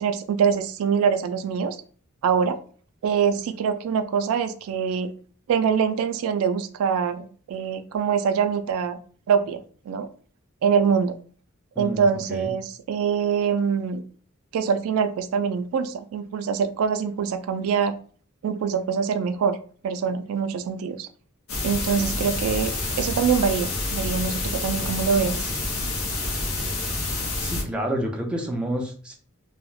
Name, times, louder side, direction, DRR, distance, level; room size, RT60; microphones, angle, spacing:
voice 1, 0.0-1.8 2.2-2.6 3.0-5.1 5.5-9.0 9.3-10.1 10.6-11.2 11.8-14.0 14.5-18.0 18.4-19.6 19.8-21.1 21.6-25.5, right 6 dB, 75° right, 9 dB, 0.3 m, -24 dB
voice 2, 11.8-12.5 27.4-29.1, right 1 dB, 5° right, 0 dB, 0.4 m, -29 dB
sound 1, 21.5-27.6, left 2 dB, 80° left, 0.7 m, -28 dB
2.2 x 2.0 x 3.1 m, 0.43 s
head